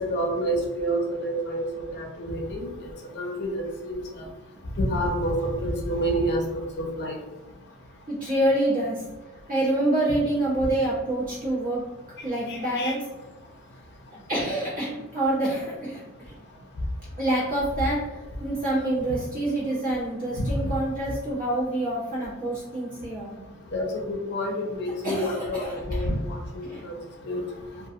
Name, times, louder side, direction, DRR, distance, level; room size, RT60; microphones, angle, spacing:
voice 1, 0.1-2.7 3.2-4.0 4.8-6.4 6.8-7.2 12.5-12.9 23.7-26.9 27.3-27.4, right 1 dB, 50° left, 0 dB, 0.5 m, -28 dB
voice 2, 8.1-9.0 9.5-11.8 12.2-13.0 14.3-16.3 17.2-18.0 18.4-23.4 23.7-23.8 25.0-26.0 26.6-26.8, right 1 dB, 40° right, -8 dB, 1.2 m, -27 dB
2.3 x 2.2 x 2.7 m, 1.1 s
head